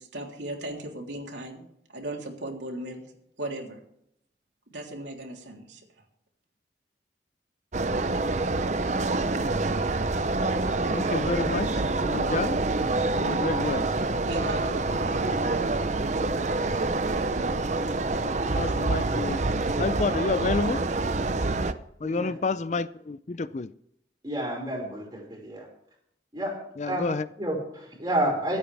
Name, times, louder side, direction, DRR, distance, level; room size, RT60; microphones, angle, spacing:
voice 1, 0.0-1.6 1.9-3.0 3.4-3.8 4.7-5.8 14.3-15.5, right 1 dB, 85° right, 0 dB, 3.3 m, -37 dB
sound 1, 7.7-21.7, right 2 dB, 40° right, 0.7 m, -26 dB
voice 2, 10.9-12.6 13.2-13.9 15.2-15.5 18.2-19.4 19.8-20.8 22.0-23.7 26.8-27.3, left 3 dB, 40° left, 15 dB, 0.4 m, -29 dB
voice 3, 22.0-22.3 24.2-25.7 26.3-26.5 26.9-27.1 27.4-28.6, right 1 dB, 20° right, -2 dB, 5.3 m, -29 dB
25.5 x 8.7 x 3.5 m, 0.73 s
head